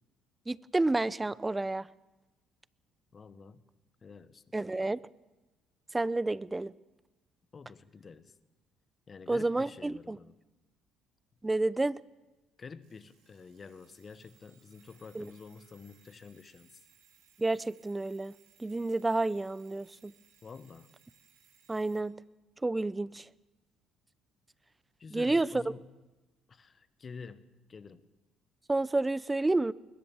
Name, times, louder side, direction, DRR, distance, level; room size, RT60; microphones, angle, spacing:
voice 1, 0.5-1.9 4.5-5.0 5.9-6.7 9.3-10.2 11.4-12.0 15.1-15.2 17.4-18.3 18.6-20.1 21.7-22.1 22.6-23.2 25.1-25.6 28.7-29.7, right 2 dB, 15° right, 20 dB, 0.7 m, -30 dB
voice 2, 3.1-3.6 4.0-4.4 7.5-8.3 9.1-10.4 12.6-16.8 20.4-20.9 25.0-25.9 26.5-28.1, left 5 dB, 40° left, 13 dB, 1.5 m, -49 dB
Alarm, 12.8-22.1, right 8 dB, 85° right, 5.4 m, -65 dB
21.5 x 20.5 x 7.2 m, 1.1 s
supercardioid pair, 70°, 0 cm